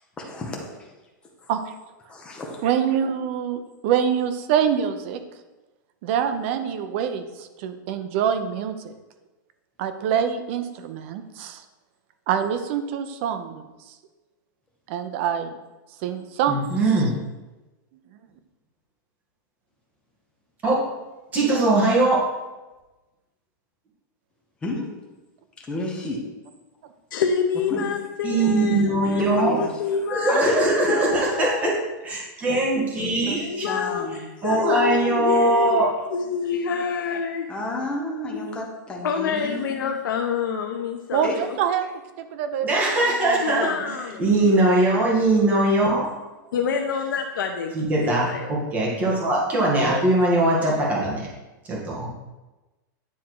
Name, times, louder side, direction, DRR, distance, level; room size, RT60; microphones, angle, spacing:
voice 1, 0.2-0.8 1.4-1.5 2.1-2.6 24.6-24.9 25.7-26.2 27.7-27.9 29.2-29.9 30.3-31.1 32.9-34.2 37.5-39.8 41.2-41.4, left 1 dB, 10° left, -1 dB, 1.0 m, -31 dB
voice 2, 2.6-5.2 6.0-8.9 9.8-11.6 12.3-13.9 14.9-15.6 16.0-16.6 41.1-41.9 42.2-42.7 43.3-44.0, right 8 dB, 35° right, 9 dB, 0.7 m, -25 dB
voice 3, 16.5-17.1 20.6-20.8 21.3-22.2 28.2-29.6 30.1-31.8 32.0-33.7 34.4-35.9 42.6-43.7 44.2-46.1 47.7-51.3 51.6-52.1, right 2 dB, 15° right, -4 dB, 1.7 m, -21 dB
voice 4, 27.1-30.4 30.9-31.7 33.4-34.1 34.4-35.8 36.1-37.5 38.3-38.4 39.0-41.6 43.4-44.6 46.5-47.7 48.0-48.5 49.8-50.1, left 6 dB, 90° left, 3 dB, 0.7 m, -27 dB
9.5 x 3.6 x 4.7 m, 1.1 s
supercardioid pair, 170°, 11 cm